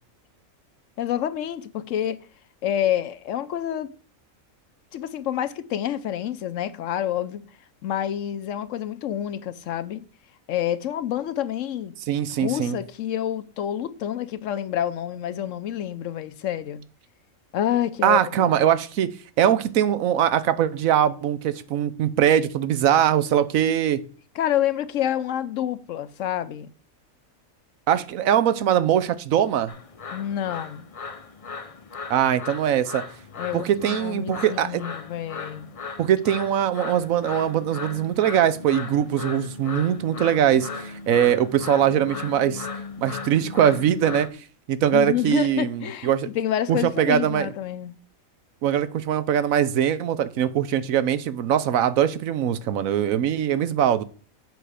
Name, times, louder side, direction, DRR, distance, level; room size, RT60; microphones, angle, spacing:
voice 1, 1.0-2.2 2.6-3.9 4.9-7.4 7.8-10.0 10.5-11.9 12.4-16.8 17.5-18.5 24.3-26.7 30.1-30.9 33.4-35.7 44.9-48.0, left 11 dB, 70° left, 0.9 m, -28 dB
voice 2, 12.1-12.8 18.0-19.1 19.4-24.0 27.9-29.7 32.1-33.0 33.5-34.8 36.0-42.7 43.0-44.3 44.7-46.3 46.7-47.5 48.6-54.0, right 10 dB, 80° right, 1.1 m, -22 dB
sound 1, 29.7-44.3, left 4 dB, 35° left, 0.6 m, -37 dB
7.9 x 6.1 x 4.9 m
omnidirectional pair, 1.4 m